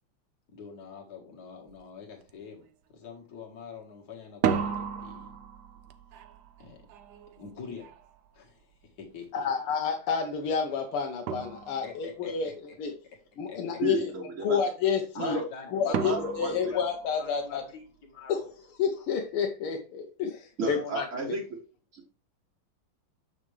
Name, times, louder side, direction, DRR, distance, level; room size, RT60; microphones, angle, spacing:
voice 1, 0.5-2.7 2.9-5.3 6.6-6.9 7.4-7.9 8.3-9.5 11.8-12.8 13.5-13.6 15.1-16.8 17.2-18.5 20.7-21.4, left 6 dB, 50° left, 2.2 m, -44 dB
sound 1, 1.7-1.8 2.2-2.7 4.2-9.1 10.7-10.8 11.3-12.2 15.9-17.7, right 7 dB, 70° right, 1.0 m, -35 dB
voice 2, 9.3-12.5 12.8-12.9 13.4-14.1 14.4-15.4 15.7-17.6 18.3-18.4 18.8-21.1, left 6 dB, 85° left, 1.8 m, -29 dB
voice 3, 13.8-14.6 15.2-15.4 16.0-16.7 20.6-21.4 21.9-22.1, right 4 dB, 45° right, 1.2 m, -33 dB
7.3 x 5.9 x 3.3 m
omnidirectional pair, 2.4 m